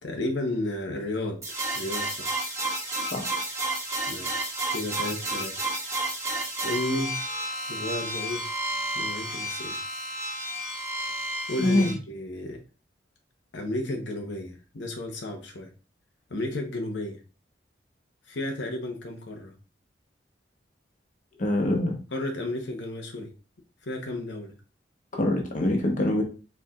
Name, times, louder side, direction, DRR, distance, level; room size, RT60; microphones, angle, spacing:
voice 1, 0.0-2.3 4.1-5.7 6.6-7.2 7.7-8.5 8.9-9.8 11.5-12.6 13.5-15.7 16.3-17.2 18.3-19.6 22.1-23.3 23.8-24.5, left 1 dB, 85° left, 2 dB, 0.9 m, -33 dB
sound 1, 1.4-11.9, right 1 dB, 15° right, 1.4 m, -31 dB
voice 2, 11.6-11.9 21.4-22.0 25.1-26.2, left 1 dB, 45° left, 1 dB, 1.0 m, -24 dB
4.6 x 4.2 x 2.4 m, 0.34 s
head